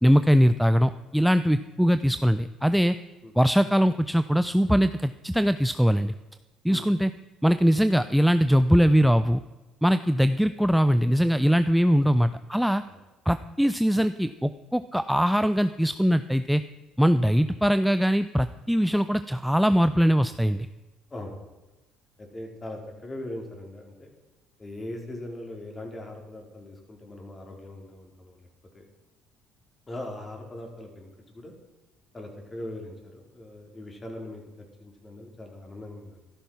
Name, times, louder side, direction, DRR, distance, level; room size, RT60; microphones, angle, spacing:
voice 1, 0.0-3.0 3.4-6.1 6.6-7.1 7.4-9.4 9.8-12.8 13.3-16.6 17.0-20.7, equal, ahead, 11 dB, 0.6 m, -21 dB
voice 2, 21.1-21.5 22.2-24.1 24.6-28.5 28.7-28.9 29.9-31.5 32.1-34.4 34.8-36.2, left 1 dB, 25° left, 2 dB, 4.5 m, -40 dB
14.0 x 12.5 x 5.8 m, 1.1 s
supercardioid pair, 70°, 0 cm